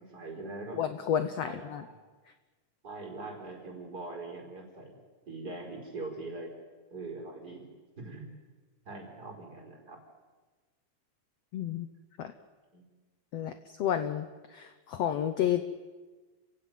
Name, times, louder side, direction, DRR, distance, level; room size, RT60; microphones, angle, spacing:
voice 1, 0.0-0.8 1.4-1.9 2.8-5.0 5.3-6.5 6.9-7.6 8.0-8.3 8.9-10.0 12.7-12.8, right 3 dB, 25° right, 1 dB, 5.2 m, -42 dB
voice 2, 0.7-1.8 11.5-11.9 12.2-12.3 13.3-15.6, left 10 dB, 65° left, 10 dB, 1.7 m, -31 dB
29.0 x 16.5 x 9.5 m, 1.3 s
omnidirectional pair, 3.8 m